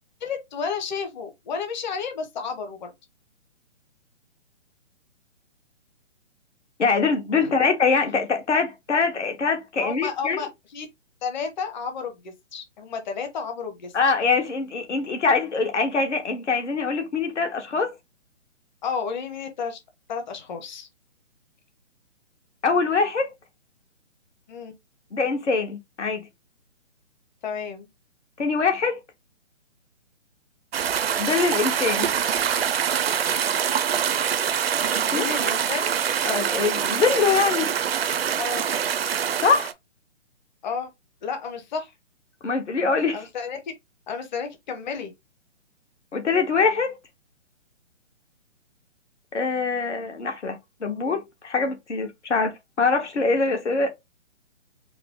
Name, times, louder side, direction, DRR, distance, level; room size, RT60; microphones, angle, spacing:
voice 1, 0.2-2.9 7.4-7.6 9.8-10.9 11.2-13.9 18.8-19.8 20.1-20.9 24.5-24.7 27.4-27.9 35.1-35.9 38.4-38.6 40.6-40.9 41.2-41.9 43.1-43.6 44.1-45.1, left 5 dB, 40° left, 0.9 m, -31 dB
voice 2, 6.8-10.4 13.9-17.9 22.6-23.3 25.1-26.3 28.4-29.0 31.2-32.1 35.1-35.3 36.2-37.7 39.4-39.7 42.4-43.2 46.1-47.0 49.3-52.5 52.8-53.9, left 4 dB, 70° left, 1.3 m, -23 dB
sound 1, 30.7-39.7, right 8 dB, 55° right, 0.5 m, -24 dB
4.7 x 2.0 x 3.6 m
figure-of-eight pair, 140°, 36 cm